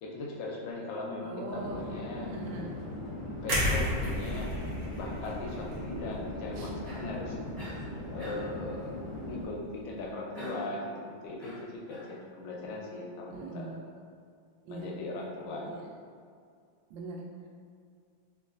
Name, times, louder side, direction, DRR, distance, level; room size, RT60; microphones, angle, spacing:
voice 1, 0.0-2.3 3.4-4.5 5.0-7.4 8.1-9.0 9.3-10.9 11.2-13.7 14.7-15.8, left 2 dB, 80° left, -1 dB, 1.3 m, -39 dB
voice 2, 1.2-1.8 2.2-2.7 6.5-6.7 13.3-13.8 14.6-14.9 15.6-15.8 16.9-17.2, right 2 dB, 80° right, -2 dB, 1.3 m, -41 dB
Conversation / Chatter / Fixed-wing aircraft airplane, 1.5-9.5, left 1 dB, 60° left, 1.1 m, -40 dB
sound 1, 3.5-7.5 7.9-8.1, equal, 65° right, 0.9 m, -33 dB
Cough, 6.8-7.2 7.6-7.9 8.2-8.6 10.3-10.8 11.4-12.1, equal, ahead, 0.4 m, -44 dB
3.1 x 3.1 x 2.4 m, 2.2 s
omnidirectional pair, 2.1 m